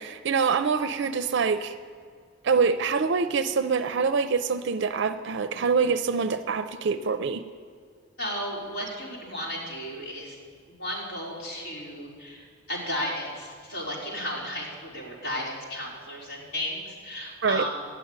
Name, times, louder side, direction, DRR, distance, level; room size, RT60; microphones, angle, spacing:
voice 1, 0.0-1.7 2.4-7.4 17.4-17.6, right 5 dB, 60° right, 11 dB, 0.4 m, -25 dB
voice 2, 8.2-10.4 10.8-17.8, equal, 70° left, -5 dB, 4.4 m, -34 dB
12.5 x 6.9 x 9.5 m, 2.1 s
head